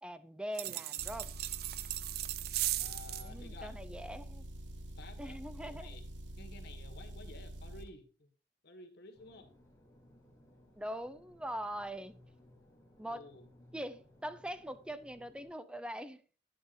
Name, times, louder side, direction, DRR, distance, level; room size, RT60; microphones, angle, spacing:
voice 1, 0.0-1.3 3.2-4.4 5.2-6.0 10.8-12.2 13.0-13.3 13.7-16.2, equal, 5° right, 0.6 m, -42 dB
sound 1, 0.5-3.3, right 15 dB, 55° right, 0.4 m, -37 dB
Motor vehicle (road) / Engine, 1.0-7.9, right 1 dB, 75° right, 1.0 m, -46 dB
voice 2, 2.8-3.8 4.8-6.0 6.4-8.3 8.6-9.5 13.0-13.5, left 3 dB, 60° left, 1.7 m, -53 dB
sound 2, 9.1-15.5, left 1 dB, 15° left, 2.8 m, -62 dB
11.0 x 10.5 x 2.6 m
head